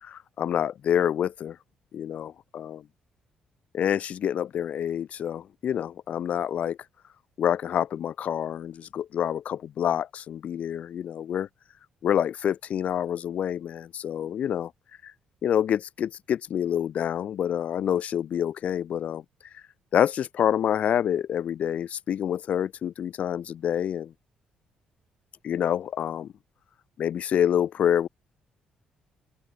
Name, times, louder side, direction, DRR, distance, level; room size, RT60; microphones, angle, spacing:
voice 1, 0.0-1.6 1.9-2.8 3.7-6.8 7.4-11.5 12.0-14.7 15.0-15.1 15.4-19.2 19.9-24.1 25.4-26.3 27.0-28.1, left 9 dB, 60° left, 1.7 m, -27 dB
open air
cardioid pair, 85°, 3 cm